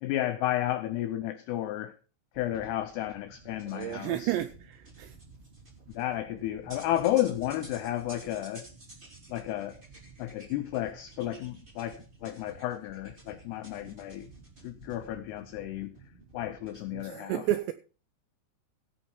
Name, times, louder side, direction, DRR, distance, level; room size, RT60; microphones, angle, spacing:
voice 1, 0.0-2.0 2.4-4.3 5.9-8.6 9.3-9.8 10.2-14.3 14.6-15.9 16.3-17.4, left 13 dB, 90° left, 2.3 m, -32 dB
sound 1, 2.3-17.0, right 3 dB, 15° right, 1.7 m, -52 dB
voice 2, 3.7-5.2 16.9-17.7, right 13 dB, 85° right, 2.5 m, -32 dB
16.0 x 5.6 x 5.8 m
omnidirectional pair, 5.6 m